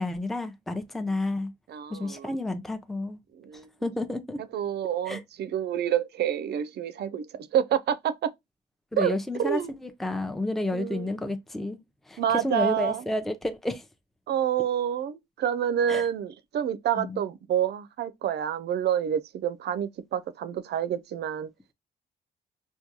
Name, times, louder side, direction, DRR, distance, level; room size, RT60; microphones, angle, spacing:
voice 1, 0.0-1.5 1.9-3.2 3.8-4.4 5.1-5.2 8.9-13.9 15.9-16.0 17.0-17.2, left 2 dB, ahead, 0.6 m, -31 dB
voice 2, 1.7-2.3 3.4-3.7 4.5-8.3 9.0-9.1 9.4-9.7 10.7-11.1 12.2-13.0 14.3-21.5, right 10 dB, 55° right, 0.5 m, -28 dB
4.4 x 2.2 x 2.8 m
hypercardioid pair, 50°, 20 cm